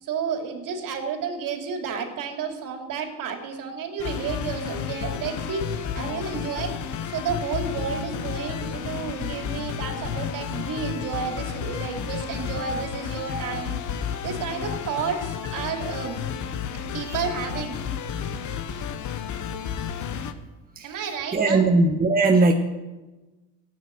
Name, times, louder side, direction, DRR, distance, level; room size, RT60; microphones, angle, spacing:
voice 1, 0.0-6.8 7.1-13.8 14.2-16.2 16.9-17.7 20.8-21.6, right 6 dB, 60° right, 3 dB, 3.0 m, -31 dB
sound 1, 4.0-20.3, left 8 dB, 50° left, 1.2 m, -32 dB
voice 2, 21.3-22.5, right 3 dB, 25° right, 2 dB, 1.3 m, -19 dB
14.0 x 9.7 x 7.8 m, 1.1 s
supercardioid pair, 95°, 38 cm